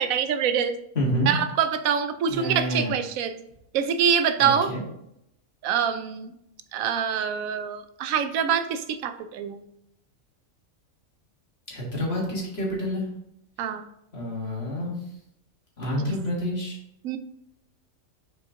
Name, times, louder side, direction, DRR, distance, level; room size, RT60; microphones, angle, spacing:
voice 1, 0.0-0.8 1.3-3.4 3.7-4.7 5.6-6.3 6.7-9.6 13.6-13.8 17.0-17.2, right 7 dB, 90° right, 10 dB, 1.0 m, -25 dB
voice 2, 1.0-1.3 2.3-2.9 4.4-4.8 11.7-13.0 14.1-14.9 15.8-16.8, equal, 50° left, -3 dB, 1.9 m, -28 dB
6.1 x 4.3 x 3.6 m, 0.79 s
omnidirectional pair, 1.4 m